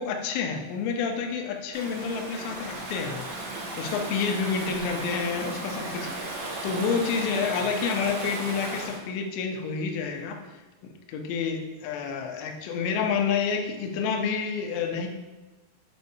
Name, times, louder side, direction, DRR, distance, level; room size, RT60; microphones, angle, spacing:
voice 1, 0.0-10.4 11.1-15.1, left 5 dB, 80° left, 3 dB, 2.7 m, -29 dB
Stream / Ocean, 1.7-9.0, right 2 dB, 70° right, 3.6 m, -35 dB
7.9 x 5.1 x 2.7 m, 1.1 s
omnidirectional pair, 5.6 m